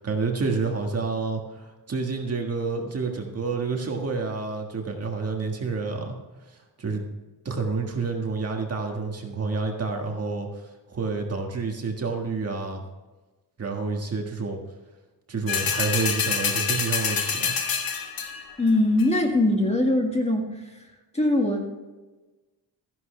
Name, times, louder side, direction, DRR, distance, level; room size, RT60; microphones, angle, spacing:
voice 1, 0.0-6.1 6.8-7.0 7.4-12.8 13.6-14.6 15.3-17.5, right 4 dB, 35° right, 2 dB, 1.7 m, -29 dB
sound 1, 15.5-18.5 19.0-19.1, left 6 dB, 55° left, 1.5 m, -26 dB
voice 2, 18.6-20.8 21.1-21.7, left 1 dB, 15° left, 2 dB, 1.7 m, -22 dB
14.0 x 11.0 x 3.3 m, 1.2 s
wide cardioid pair, 150°, 43 cm